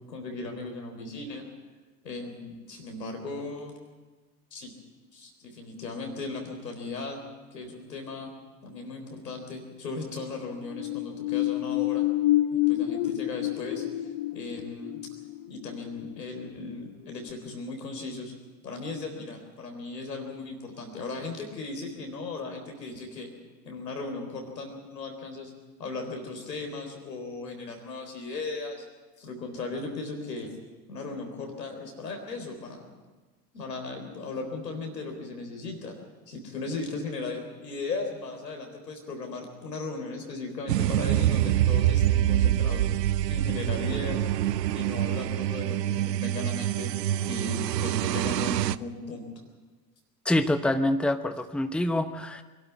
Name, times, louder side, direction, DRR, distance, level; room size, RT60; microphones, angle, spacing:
voice 1, 0.1-1.4 2.0-3.7 4.5-4.7 5.1-7.2 7.5-8.3 8.6-12.0 12.5-15.0 15.5-18.3 18.6-23.3 23.7-25.5 25.8-28.8 29.2-30.5 30.9-32.9 33.5-36.0 36.3-42.9 43.3-44.3 44.7-46.9 47.2-49.3, left 3 dB, 90° left, 3 dB, 3.9 m, -37 dB
sound 1, 10.6-16.9 17.3-17.4, left 15 dB, 55° left, 0.8 m, -29 dB
sound 2, 40.7-48.8, right 12 dB, 85° right, 0.6 m, -26 dB
voice 2, 50.2-52.4, left 1 dB, ahead, 8 dB, 1.0 m, -26 dB
23.0 x 12.0 x 9.5 m, 1.3 s
hypercardioid pair, 80°, 48 cm